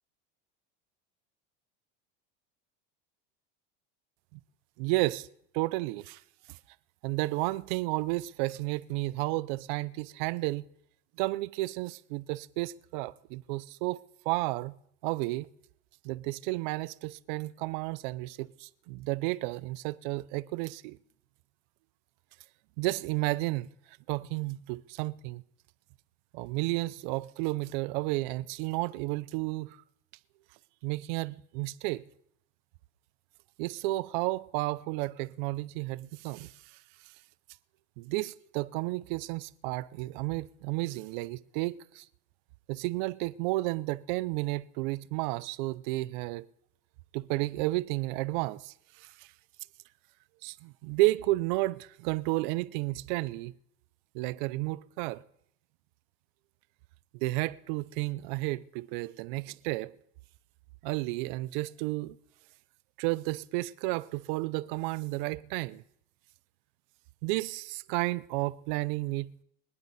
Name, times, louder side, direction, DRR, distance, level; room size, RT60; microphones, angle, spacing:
voice 1, 4.8-5.3 5.5-6.2 6.5-6.6 7.0-10.7 11.2-14.8 15.0-15.5 16.0-21.0 22.8-23.7 24.1-25.4 26.3-29.8 30.8-32.0 33.6-36.8 38.0-42.1 42.7-46.4 47.1-49.3 50.4-53.5 54.1-55.2 57.1-59.9 60.8-62.2 63.0-65.8 67.2-69.3, right 20 dB, 50° right, 0.5 m, -32 dB
24.0 x 10.5 x 4.0 m
cardioid pair, 175°, 30 cm